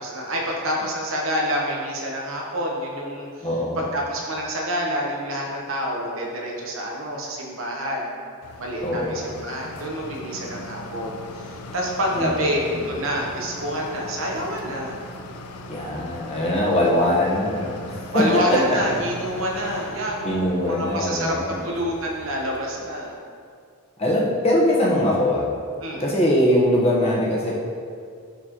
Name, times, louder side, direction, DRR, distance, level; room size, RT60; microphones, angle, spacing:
voice 1, 0.0-3.5 3.7-8.1 8.6-15.0 16.7-17.1 18.1-23.1 25.8-26.0, equal, 60° right, -2 dB, 1.1 m, -27 dB
voice 2, 3.4-3.9 8.8-9.3 12.1-12.7 15.7-18.6 20.2-21.6 24.0-25.5 26.0-27.5, left 1 dB, 25° left, -5 dB, 1.2 m, -22 dB
sound 1, 8.4-23.1, left 2 dB, 85° left, 0.5 m, -40 dB
10.0 x 4.3 x 3.1 m, 2.2 s
head